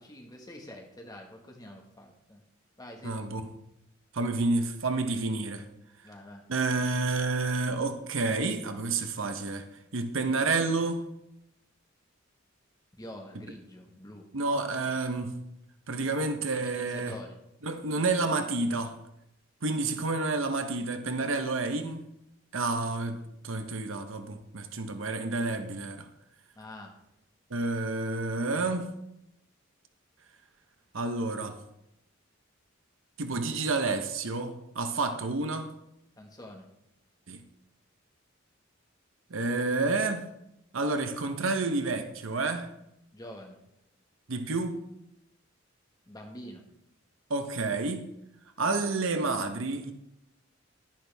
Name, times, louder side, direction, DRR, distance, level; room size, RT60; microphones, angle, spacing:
voice 1, 0.0-2.4 2.8-3.3 6.0-6.4 12.9-14.3 16.5-17.4 26.5-26.9 36.2-36.7 43.1-43.6 46.1-46.6, left 1 dB, 20° left, 1.6 m, -46 dB
voice 2, 3.0-3.5 4.1-5.6 6.5-9.6 9.9-11.1 14.3-15.3 15.9-17.2 17.6-19.0 19.6-22.0 22.5-26.1 27.5-28.9 30.9-31.6 33.2-35.7 37.3-37.4 39.3-40.3 40.7-42.7 44.3-44.8 47.3-48.1 48.6-49.9, right 3 dB, 80° right, 1.0 m, -29 dB
11.0 x 10.0 x 3.5 m
head